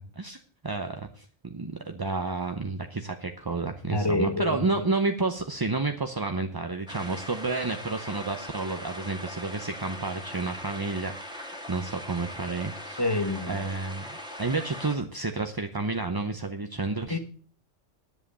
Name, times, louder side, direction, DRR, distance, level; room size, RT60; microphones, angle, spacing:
voice 1, 0.0-13.0 13.5-17.2, right 3 dB, 25° right, 0.5 m, -31 dB
voice 2, 3.9-4.8 13.0-13.6 17.1-17.2, left 2 dB, 20° left, 1.1 m, -27 dB
sound 1, 6.9-14.9, left 1 dB, 5° right, 2.0 m, -40 dB
10.5 x 7.6 x 6.8 m
omnidirectional pair, 1.3 m